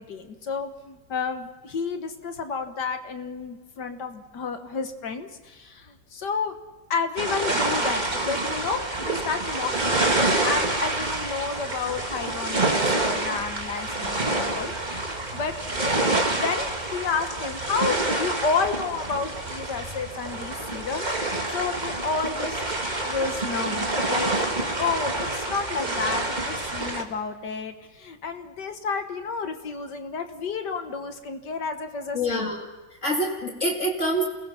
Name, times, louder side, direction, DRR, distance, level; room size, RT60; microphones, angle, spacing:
voice 1, 0.0-6.6 6.9-15.0 15.3-15.5 16.3-21.1 21.5-22.6 23.0-24.3 24.8-32.5, left 5 dB, 70° left, 6 dB, 2.0 m, -31 dB
sound 1, 7.2-27.0, right 2 dB, 25° right, 1.9 m, -27 dB
voice 2, 32.1-32.7 33.0-34.2, equal, 40° left, 0 dB, 2.8 m, -26 dB
29.0 x 20.0 x 5.8 m, 1.2 s
omnidirectional pair, 1.9 m